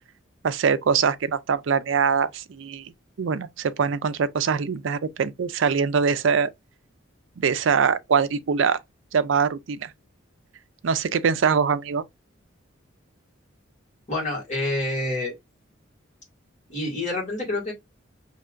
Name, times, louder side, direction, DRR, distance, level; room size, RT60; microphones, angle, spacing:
voice 1, 0.4-2.9 3.2-6.5 7.4-8.8 9.1-9.9 10.8-12.0, right 6 dB, 70° right, 0.4 m, -23 dB
voice 2, 14.1-15.3 16.7-17.7, left 2 dB, 35° left, 2.0 m, -27 dB
5.5 x 2.9 x 2.4 m
head